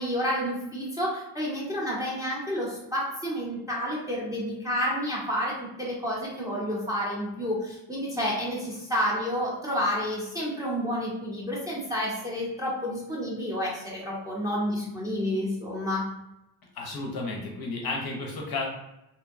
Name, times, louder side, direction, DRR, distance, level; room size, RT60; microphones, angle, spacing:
voice 1, 0.0-16.0, equal, 5° right, -5 dB, 0.5 m, -30 dB
voice 2, 16.7-18.7, left 3 dB, 50° left, 0 dB, 0.6 m, -32 dB
2.6 x 2.1 x 2.4 m, 0.88 s
wide cardioid pair, 140°, 49 cm